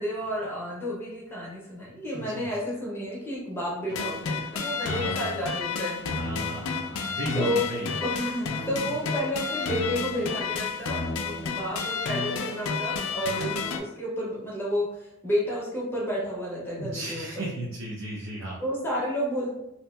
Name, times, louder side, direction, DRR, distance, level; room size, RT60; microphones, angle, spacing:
voice 1, 0.0-6.4 7.3-7.7 8.0-17.5 18.6-19.5, equal, 10° left, -5 dB, 0.5 m, -31 dB
voice 2, 2.1-2.5 4.8-5.3 6.2-8.1 16.8-18.6, right 1 dB, 75° right, -4 dB, 0.5 m, -35 dB
sound 1, 3.9-13.8, left 5 dB, 70° left, 0.3 m, -31 dB
2.8 x 2.6 x 2.2 m, 0.87 s
head